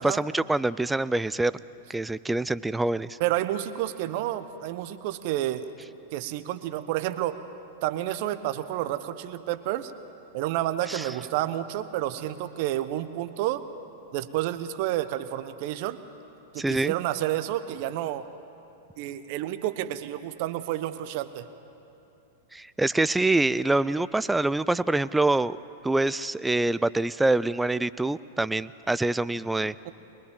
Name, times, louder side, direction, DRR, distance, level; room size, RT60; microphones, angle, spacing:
voice 1, 0.0-1.5 1.9-3.2 10.9-11.1 16.6-16.9 22.5-29.7, right 2 dB, 5° right, 17 dB, 0.5 m, -25 dB
voice 2, 3.2-5.7 6.1-7.4 7.8-9.9 10.3-13.6 14.1-16.0 16.5-18.2 19.0-21.5 29.8-29.9, right 13 dB, 55° right, 12 dB, 1.1 m, -30 dB
23.0 x 21.0 x 7.4 m, 2.8 s
hypercardioid pair, 105°, 0 cm